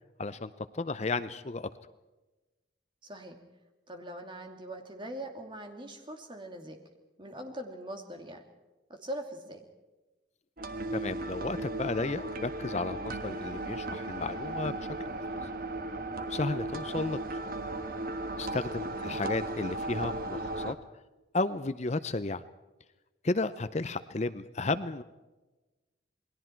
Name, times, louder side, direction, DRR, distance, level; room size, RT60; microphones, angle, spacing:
voice 1, 0.2-1.7 10.9-15.5 16.3-17.5 18.4-20.8 21.3-22.4 23.2-25.0, left 3 dB, 35° left, 12 dB, 0.6 m, -33 dB
voice 2, 3.0-3.4 3.9-6.8 7.2-8.4 8.9-9.6 18.9-19.2, right 1 dB, 25° right, 4 dB, 2.6 m, -42 dB
sound 1, 10.6-20.7, right 2 dB, 50° right, 1.3 m, -36 dB
28.5 x 21.0 x 4.5 m, 1.1 s
head